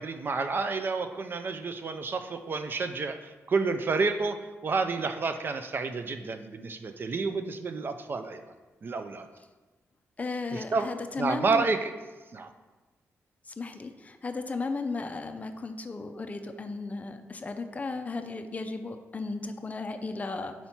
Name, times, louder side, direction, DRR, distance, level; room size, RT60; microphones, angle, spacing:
voice 1, 0.0-4.4 4.6-8.4 8.8-9.3 10.5-10.9 11.2-11.9 12.3-12.5, right 4 dB, 40° right, 8 dB, 0.4 m, -30 dB
voice 2, 10.2-11.7 13.5-20.5, left 3 dB, 30° left, 7 dB, 0.4 m, -35 dB
4.4 x 4.2 x 5.6 m, 1.2 s
wide cardioid pair, 120°, 5 cm